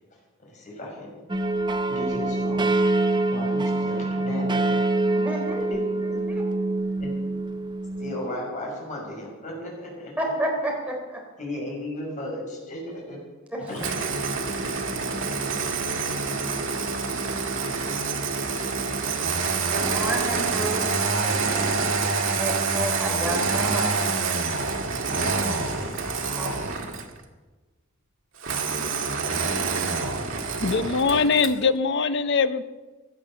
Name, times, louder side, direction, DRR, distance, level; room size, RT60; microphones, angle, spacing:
voice 1, 0.5-1.1 1.9-2.7 3.0-4.8 5.7-5.8 6.1-6.2 7.0-7.1 8.0-10.1 11.4-13.2 13.7-13.9, left 1 dB, 40° left, -2 dB, 6.3 m, -35 dB
sound 1, 1.3-8.1, right 2 dB, 20° right, 0.8 m, -25 dB
voice 2, 5.1-5.7 6.3-6.6 10.2-11.2 13.5-13.6 19.7-21.9 22.3-24.2 26.0-26.6, right 1 dB, 5° right, 0 dB, 3.9 m, -31 dB
Engine starting, 13.8-27.2 28.4-31.6, right 4 dB, 70° right, 1.9 m, -27 dB
voice 3, 30.6-32.6, left 4 dB, 60° left, 12 dB, 0.8 m, -22 dB
16.5 x 11.0 x 6.9 m, 1.2 s
head